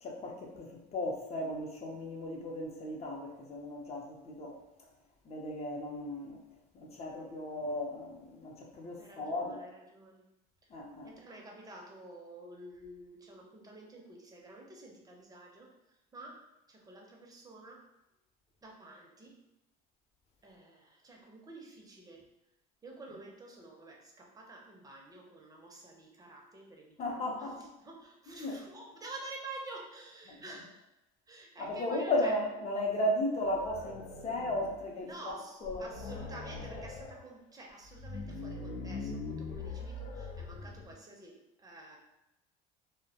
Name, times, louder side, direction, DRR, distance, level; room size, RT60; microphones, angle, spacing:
voice 1, 0.0-4.6 5.2-6.4 6.7-9.6 10.7-11.1 27.0-27.7 28.3-28.6 30.3-30.4 31.6-35.9, left 1 dB, 30° left, 1 dB, 0.6 m, -35 dB
voice 2, 9.0-10.2 11.0-17.8 18.6-19.4 20.4-22.3 22.8-30.8 31.3-32.4 35.0-42.0, right 2 dB, 20° right, -1 dB, 0.6 m, -50 dB
sound 1, 33.4-34.9 35.3-35.4 35.6-37.2 37.8-41.0, left 3 dB, 80° left, 0.6 m, -42 dB
2.2 x 2.1 x 2.7 m, 0.92 s
supercardioid pair, 100°, 20 cm